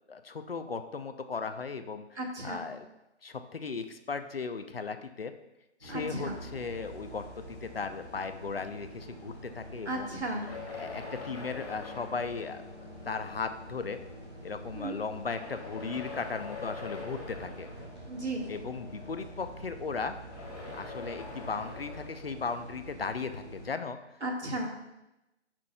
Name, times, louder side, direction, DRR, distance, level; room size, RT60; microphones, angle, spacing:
voice 1, 0.1-2.9 3.2-5.3 5.8-10.1 10.8-12.6 13.1-14.0 14.4-17.7 18.5-20.1 20.7-24.0, left 5 dB, 55° left, 9 dB, 0.6 m, -37 dB
voice 2, 2.2-2.7 5.9-6.4 9.9-10.5 14.7-15.0 18.1-18.5 24.2-24.7, right 1 dB, 65° right, 0 dB, 1.9 m, -35 dB
sound 1, 5.8-23.7, equal, 5° right, 0.7 m, -46 dB
sound 2, 10.4-13.1 14.0-14.1 15.1-18.2 20.1-23.1, left 3 dB, 25° left, 2.6 m, -44 dB
14.0 x 6.1 x 2.3 m, 0.94 s
figure-of-eight pair, 150°, 35 cm